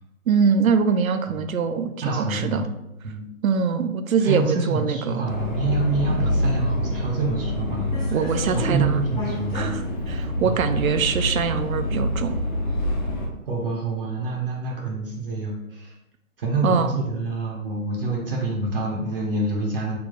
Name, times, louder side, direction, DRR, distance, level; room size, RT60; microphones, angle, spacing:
voice 1, 0.3-2.6 3.4-5.2 8.1-9.0 9.5-12.3 16.6-17.0, right 6 dB, 75° right, 9 dB, 0.5 m, -23 dB
voice 2, 2.0-2.6 3.0-3.3 4.2-9.8 10.4-10.6 13.5-15.9 16.4-20.0, right 3 dB, 40° right, -2 dB, 0.7 m, -27 dB
Subway metro underground, 5.3-13.3, left 1 dB, 35° left, 0.9 m, -26 dB
3.3 x 2.3 x 4.0 m, 0.92 s
figure-of-eight pair, 135°, 42 cm